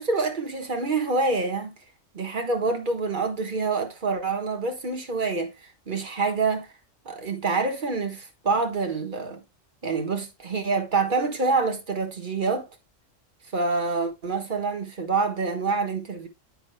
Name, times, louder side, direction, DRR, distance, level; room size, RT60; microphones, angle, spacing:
voice 1, 0.0-1.7 2.1-6.7 7.1-9.4 9.8-12.7 13.5-16.3, right 4 dB, 40° right, 1.6 m, -26 dB
10.0 x 8.4 x 2.2 m
omnidirectional pair, 1.3 m